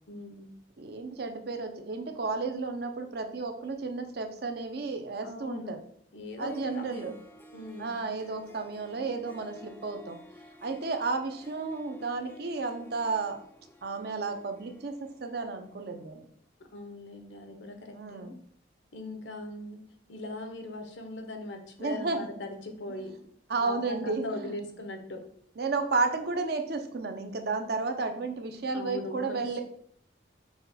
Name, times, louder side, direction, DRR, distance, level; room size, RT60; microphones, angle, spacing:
voice 1, 0.1-0.6 5.2-5.8 6.1-7.1 7.5-8.0 16.7-18.3 18.9-19.8 20.1-23.3 23.5-25.2 28.7-29.6, left 2 dB, 70° left, 5 dB, 0.8 m, -40 dB
voice 2, 0.8-5.8 6.4-7.1 7.8-10.2 10.6-13.5 13.8-16.2 17.9-18.3 21.8-22.3 22.9-23.0 23.5-24.6 25.6-29.6, right 4 dB, 55° right, 6 dB, 0.5 m, -32 dB
Harp, 6.2-6.3 6.5-16.0, equal, 10° left, 0.4 m, -52 dB
5.7 x 2.3 x 4.0 m, 0.64 s
head